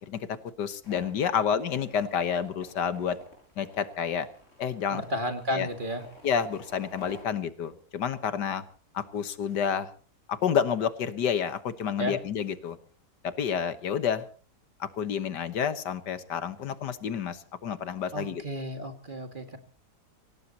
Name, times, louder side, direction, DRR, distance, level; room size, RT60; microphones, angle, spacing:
voice 1, 0.6-3.2 3.6-4.3 4.6-5.0 5.5-5.7 6.2-8.6 8.9-9.9 10.3-12.8 13.2-14.2 14.8-18.4, left 7 dB, 85° left, 12 dB, 1.8 m, -29 dB
sound 1, 0.8-7.2, left 1 dB, 45° left, 7.2 m, -51 dB
voice 2, 4.9-6.0 12.0-12.2 18.1-19.6, equal, 30° right, 6 dB, 2.2 m, -32 dB
25.5 x 18.0 x 2.9 m, 0.40 s
omnidirectional pair, 1.8 m